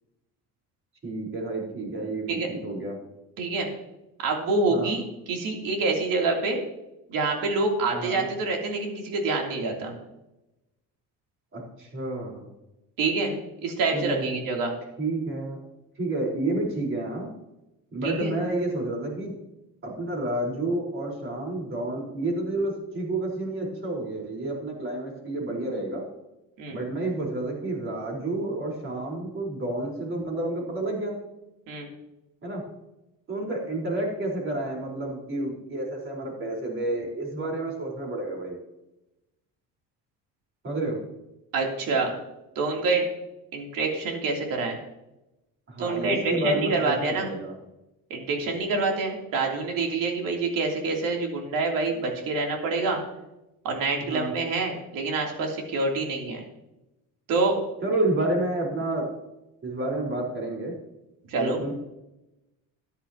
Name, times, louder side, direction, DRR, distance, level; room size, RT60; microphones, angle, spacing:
voice 1, 1.0-2.9 4.7-4.9 7.9-8.2 11.5-12.5 13.9-14.4 15.0-15.6 16.0-17.3 17.9-19.3 19.8-26.0 26.7-31.2 32.4-32.6 33.3-38.6 40.6-41.0 45.7-47.5 54.1-54.3 57.8-59.1 59.6-60.8 61.3-61.7, right 2 dB, 35° right, -1 dB, 4.3 m, -30 dB
voice 2, 3.4-3.7 4.2-6.6 7.1-9.9 13.0-14.7 18.0-18.3 26.6-26.8 31.7-31.9 41.5-42.1 42.5-43.1 43.5-44.8 45.8-47.3 48.1-53.0 53.6-56.4 57.3-57.6 61.3-61.7, right 3 dB, 70° right, 1 dB, 3.1 m, -26 dB
13.5 x 10.5 x 2.9 m, 0.93 s
cardioid pair, 130°, 34 cm